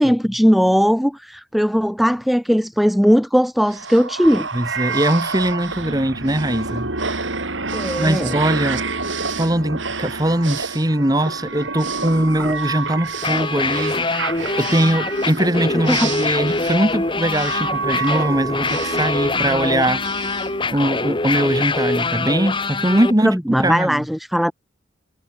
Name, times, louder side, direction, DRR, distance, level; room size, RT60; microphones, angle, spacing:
voice 1, 0.0-4.5 7.7-8.4 15.9-16.1 23.2-24.5, equal, ahead, 1.2 m, -18 dB
sound 1, 3.7-21.3, right 4 dB, 75° right, 6.1 m, -28 dB
voice 2, 4.5-6.9 7.7-8.8 9.4-13.9 14.6-20.0 20.7-24.0, right 1 dB, 20° right, 1.7 m, -21 dB
sound 2, 13.1-23.1, left 3 dB, 25° left, 1.5 m, -24 dB
head